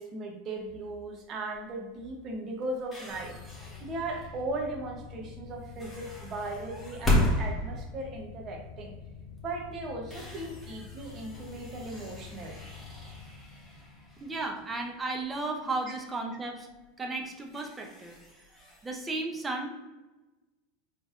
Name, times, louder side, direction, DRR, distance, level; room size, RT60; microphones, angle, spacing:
voice 1, 0.0-3.4 3.8-8.9 9.4-12.6 15.9-16.0, right 2 dB, 40° right, 1 dB, 1.0 m, -37 dB
sound 1, 0.5-1.0 1.5-1.7 2.0-4.6 5.6-9.0 9.4-9.5 9.9-15.4 15.7-15.8 16.7-16.8 17.2-19.1, left 1 dB, 10° left, 1.4 m, -35 dB
sound 2, 3.1-16.3, left 6 dB, 50° left, 0.5 m, -47 dB
voice 2, 14.2-16.7 17.0-18.2 18.8-19.8, right 2 dB, 15° right, 2 dB, 0.7 m, -34 dB
4.0 x 3.3 x 2.6 m, 1.1 s
hypercardioid pair, 105°, 0 cm